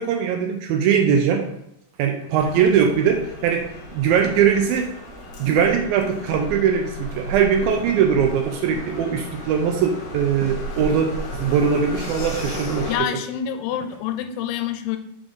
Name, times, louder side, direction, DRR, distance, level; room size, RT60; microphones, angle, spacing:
voice 1, 0.0-1.4 2.0-3.7 3.9-4.9 5.4-13.1, right 7 dB, 85° right, 4 dB, 2.2 m, -21 dB
sound 1, 2.3-13.0, left 1 dB, 65° left, 2.1 m, -34 dB
voice 2, 12.9-15.0, left 10 dB, 85° left, 8 dB, 2.6 m, -27 dB
6.2 x 3.7 x 5.1 m, 0.81 s
omnidirectional pair, 4.5 m